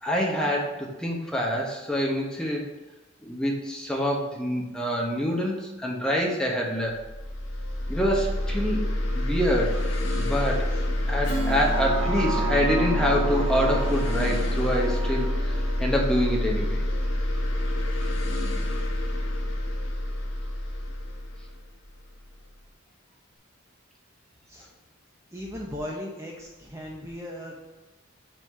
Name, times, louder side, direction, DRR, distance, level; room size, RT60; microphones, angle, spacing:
voice 1, 0.0-2.6 3.2-7.0 7.9-8.8 9.1-9.8 10.2-10.7 11.1-15.5 15.8-16.8, equal, 5° left, -2 dB, 1.2 m, -26 dB
sound 1, 6.9-22.4, left 1 dB, 70° left, 1.6 m, -27 dB
Strum, 11.2-16.1, right 1 dB, 35° left, 2.0 m, -39 dB
sound 2, 11.4-17.6 18.0-18.1, right 2 dB, 75° right, 2.0 m, -34 dB
voice 2, 11.9-12.4 24.5-24.7 25.3-27.6, left 1 dB, 15° right, -3 dB, 0.8 m, -38 dB
6.2 x 4.3 x 5.4 m, 1.1 s
head